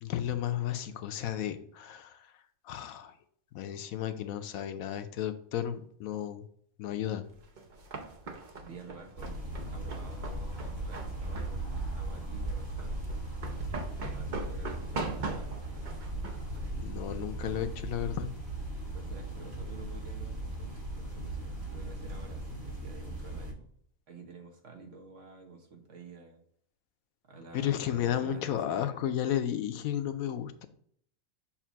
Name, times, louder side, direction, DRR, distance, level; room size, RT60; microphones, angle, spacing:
voice 1, 0.0-2.3 2.6-3.1 3.5-6.5 6.8-7.3 16.7-18.3 27.5-30.7, left 10 dB, 85° left, 9 dB, 1.1 m, -33 dB
sound 1, 7.3-17.7, right 3 dB, 45° right, 0.7 m, -41 dB
voice 2, 8.6-13.0 14.1-15.1 18.9-23.7 24.1-26.4 27.3-28.8, right 3 dB, 60° right, 2 dB, 1.4 m, -50 dB
sound 2, 9.2-23.5, right 1 dB, 85° right, 2.3 m, -38 dB
7.2 x 2.5 x 5.6 m, 0.64 s
omnidirectional pair, 1.4 m